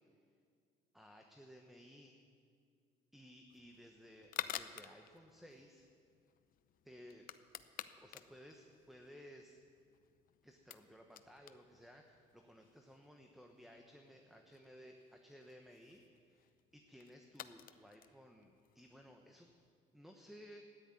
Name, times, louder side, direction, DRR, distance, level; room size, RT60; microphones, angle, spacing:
voice 1, 0.9-2.2 3.1-5.9 6.8-7.3 7.8-9.6 10.4-19.5 19.9-20.6, equal, ahead, 3 dB, 1.1 m, -58 dB
sound 1, 3.5-19.7, left 11 dB, 55° left, 0.7 m, -53 dB
13.5 x 10.0 x 9.6 m, 2.2 s
cardioid pair, 110°, 17 cm